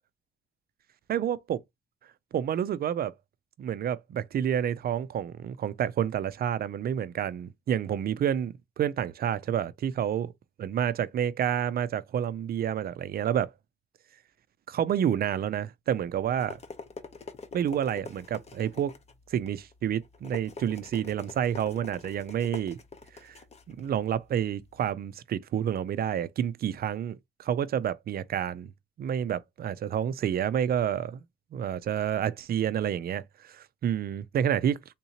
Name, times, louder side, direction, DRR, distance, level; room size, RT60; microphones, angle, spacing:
voice 1, 1.1-1.6 2.3-3.1 3.6-10.3 10.6-13.5 14.7-16.6 17.5-18.9 19.3-22.8 23.2-23.3 23.7-28.7 29.0-31.2 31.5-34.8, right 9 dB, 50° right, 0.4 m, -29 dB
sound 1, 16.0-24.9, left 4 dB, 35° left, 0.7 m, -46 dB
3.6 x 2.8 x 2.8 m
cardioid pair, 90°, 20 cm